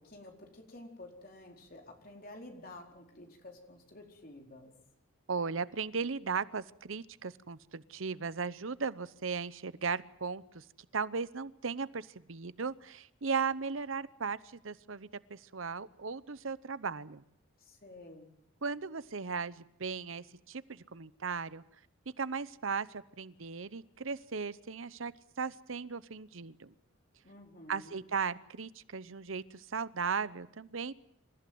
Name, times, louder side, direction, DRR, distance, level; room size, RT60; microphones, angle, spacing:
voice 1, 0.0-4.7 17.6-18.3 27.2-28.0, left 2 dB, 45° left, 2 dB, 4.6 m, -51 dB
voice 2, 5.3-10.6 10.9-17.2 18.6-21.6 22.2-26.7 27.7-30.9, right 5 dB, 75° right, 16 dB, 0.8 m, -37 dB
26.5 x 15.0 x 9.4 m, 0.73 s
head